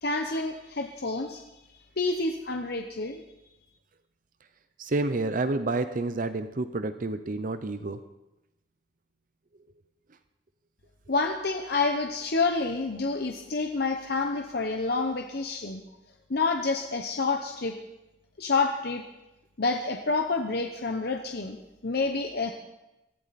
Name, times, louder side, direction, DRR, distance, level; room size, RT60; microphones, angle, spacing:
voice 1, 0.0-1.4 2.0-3.2 11.1-15.8 16.3-17.8 18.4-19.0 19.6-22.5, left 3 dB, 55° left, 4 dB, 0.9 m, -28 dB
voice 2, 4.8-8.0, right 2 dB, 45° right, 10 dB, 0.6 m, -29 dB
18.0 x 14.5 x 4.2 m, 0.97 s
head